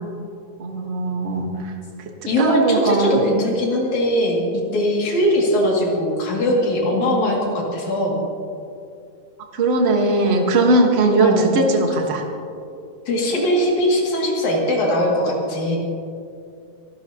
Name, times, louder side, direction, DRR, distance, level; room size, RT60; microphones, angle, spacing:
voice 1, 0.6-1.7 2.4-3.2 9.5-12.2, right 2 dB, 80° right, 2 dB, 0.5 m, -19 dB
voice 2, 2.3-8.2 11.2-11.7 13.1-15.8, left 1 dB, 75° left, -2 dB, 3.7 m, -20 dB
27.5 x 12.5 x 2.9 m, 2.5 s
omnidirectional pair, 3.4 m